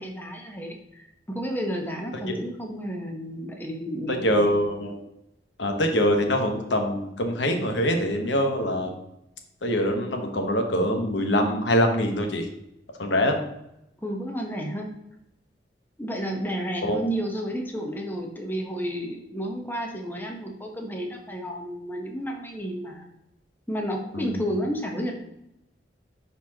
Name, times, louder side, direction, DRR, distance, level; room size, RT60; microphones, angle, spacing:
voice 1, 0.0-4.4 14.0-14.9 16.0-23.1 23.7-25.1, equal, 10° left, 1 dB, 1.0 m, -31 dB
voice 2, 4.1-5.0 5.6-9.0 9.6-12.5 13.0-13.4 16.8-17.0 24.1-24.4, equal, 90° left, 4 dB, 1.1 m, -24 dB
11.0 x 4.2 x 2.9 m, 0.83 s
head